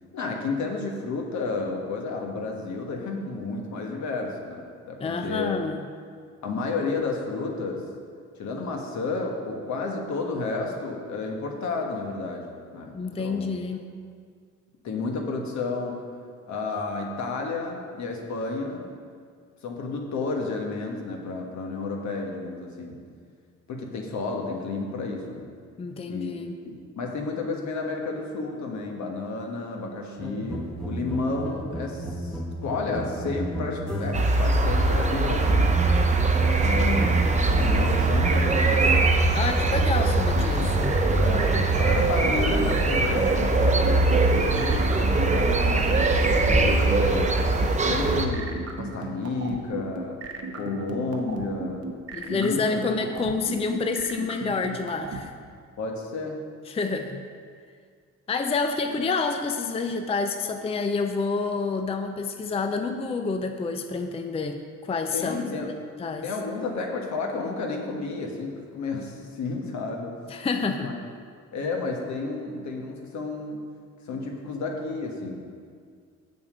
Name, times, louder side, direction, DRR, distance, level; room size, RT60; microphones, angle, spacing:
voice 1, 0.1-5.5 6.4-7.9 8.4-13.5 14.8-16.1 16.5-18.9 19.6-23.0 23.7-25.5 26.0-35.7 36.3-39.0 41.2-50.2 50.5-51.9 52.3-52.6 55.8-56.4 65.1-65.7 66.2-70.2 70.8-70.9 71.5-73.6 74.1-75.5, left 3 dB, 70° left, 1 dB, 1.3 m, -31 dB
voice 2, 5.0-5.8 12.9-13.8 25.8-26.6 39.3-41.0 52.1-55.3 56.7-57.2 58.3-65.4 66.0-66.3 70.3-70.9, left 4 dB, 20° left, 6 dB, 0.5 m, -28 dB
sound 1, 30.2-34.4 35.1-39.4, equal, 5° left, 1.1 m, -33 dB
sound 2, 34.1-48.3, right 3 dB, 25° right, 0.8 m, -21 dB
sound 3, 40.3-55.2, right 3 dB, 50° right, 1.0 m, -34 dB
6.9 x 6.8 x 5.1 m, 2.1 s
cardioid pair, 90°, 30 cm